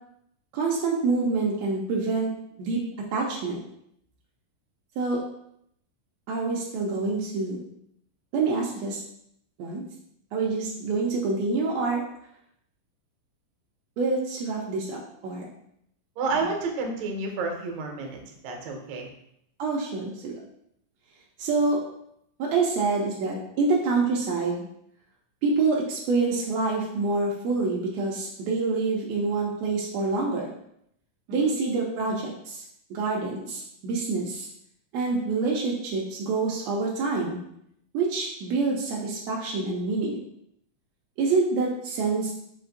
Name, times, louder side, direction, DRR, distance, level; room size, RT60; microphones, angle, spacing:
voice 1, 0.5-2.3 2.6-2.8 3.1-3.6 5.0-5.2 6.3-7.6 8.3-9.0 9.6-9.8 10.3-12.0 14.0-15.4 16.3-16.4 19.6-20.4 21.4-21.8 22.4-24.6 25.4-30.5 31.3-32.6 32.9-34.5 34.9-37.4 37.9-40.2 41.2-42.3, right 3 dB, 90° right, -3 dB, 1.5 m, -26 dB
voice 2, 16.2-18.2 18.4-19.1 31.3-31.5, right 3 dB, 70° right, 1 dB, 1.7 m, -30 dB
5.3 x 2.5 x 3.9 m, 0.74 s
omnidirectional pair, 3.8 m